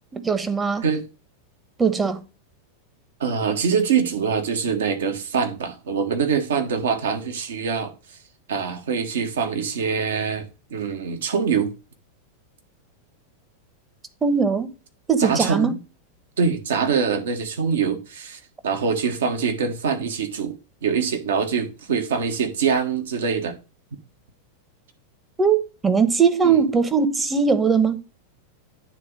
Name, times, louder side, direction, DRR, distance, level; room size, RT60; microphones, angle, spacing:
voice 1, 0.1-0.8 1.8-2.2 14.2-14.7 15.1-15.7 25.4-28.0, right 5 dB, 15° right, 1.0 m, -20 dB
voice 2, 3.2-7.9 8.5-11.7 15.2-15.7 16.4-20.6 20.8-23.5 26.4-26.6, right 6 dB, 60° right, 1.5 m, -24 dB
9.4 x 3.9 x 5.1 m
figure-of-eight pair, 90°, 0 cm